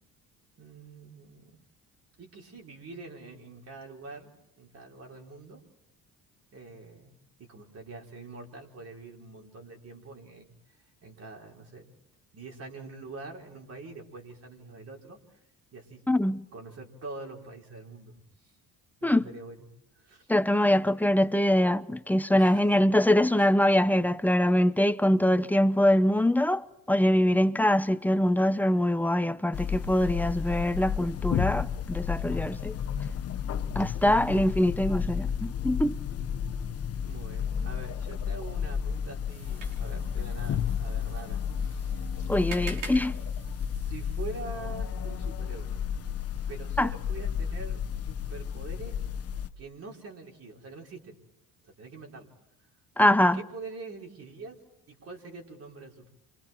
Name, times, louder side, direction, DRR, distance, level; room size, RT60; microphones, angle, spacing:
voice 1, 0.6-1.6 2.2-5.6 6.5-7.1 7.5-10.5 11.0-11.9 12.3-15.4 15.7-16.0 16.3-18.2 18.4-18.5 19.0-19.6 19.9-20.3 22.3-22.6 23.4-23.5 37.0-42.4 43.7-45.7 46.5-49.0 49.6-51.2 51.6-52.3 53.3-54.6 54.9-56.1, right 3 dB, 50° right, 4.9 m, -45 dB
voice 2, 16.1-16.4 19.0-19.3 20.3-32.7 33.7-36.0 42.3-43.1 46.8-46.9 53.0-53.4, left 1 dB, 5° left, 0.8 m, -23 dB
sound 1, 29.5-49.5, left 7 dB, 45° left, 1.0 m, -32 dB
sound 2, 39.3-44.4, right 4 dB, 75° right, 5.3 m, -46 dB
29.5 x 26.0 x 4.6 m
supercardioid pair, 85°, 33 cm